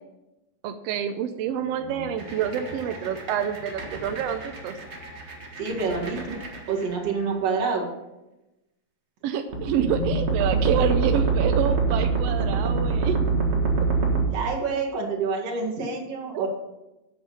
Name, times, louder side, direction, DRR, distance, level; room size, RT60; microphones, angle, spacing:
voice 1, 0.6-4.8 9.2-13.2 16.3-16.5, right 8 dB, 75° right, 7 dB, 1.5 m, -27 dB
sound 1, 1.5-4.6, left 3 dB, 15° left, 4.5 m, -46 dB
sound 2, 2.2-7.2 9.5-14.2, right 4 dB, 35° right, 1.3 m, -26 dB
voice 2, 5.6-6.4 6.7-7.9 14.3-16.5, right 4 dB, 60° right, -1 dB, 2.9 m, -27 dB
8.6 x 8.5 x 5.5 m, 0.98 s
omnidirectional pair, 3.3 m